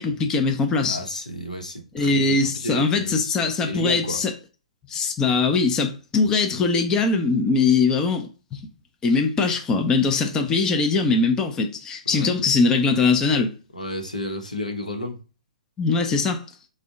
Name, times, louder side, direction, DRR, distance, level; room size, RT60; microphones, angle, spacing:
voice 1, 0.0-1.0 1.9-4.3 4.9-8.6 9.0-13.5 15.8-16.4, left 4 dB, 15° left, 0.5 m, -21 dB
voice 2, 0.9-4.2 12.1-12.3 13.7-15.2, left 1 dB, 80° left, 0.8 m, -32 dB
3.4 x 2.1 x 3.7 m
figure-of-eight pair, 120°, 4 cm